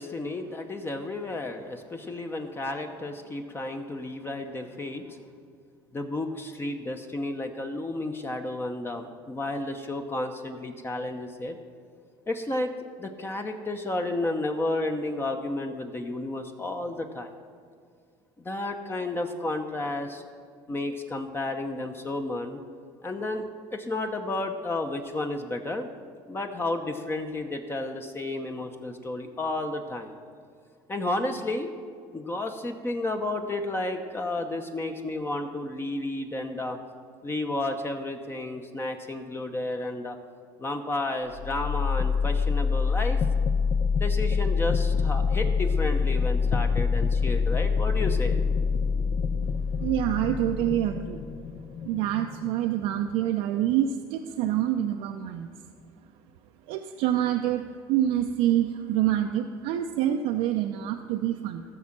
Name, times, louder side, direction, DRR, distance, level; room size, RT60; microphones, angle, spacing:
voice 1, 0.0-5.2 5.9-11.6 12.3-12.7 13.0-17.3 18.4-20.2 20.7-22.6 23.0-25.9 26.3-30.1 30.9-31.7 32.1-36.8 37.2-40.2 40.6-43.2 43.9-48.4, left 2 dB, 20° left, 5 dB, 0.9 m, -32 dB
sound 1, 41.3-53.2, left 5 dB, 60° left, 0.8 m, -26 dB
voice 2, 49.8-51.2 51.8-55.5 56.7-61.6, right 11 dB, 80° right, 4 dB, 0.6 m, -26 dB
14.5 x 6.4 x 6.0 m, 2.1 s
supercardioid pair, 100°, 11 cm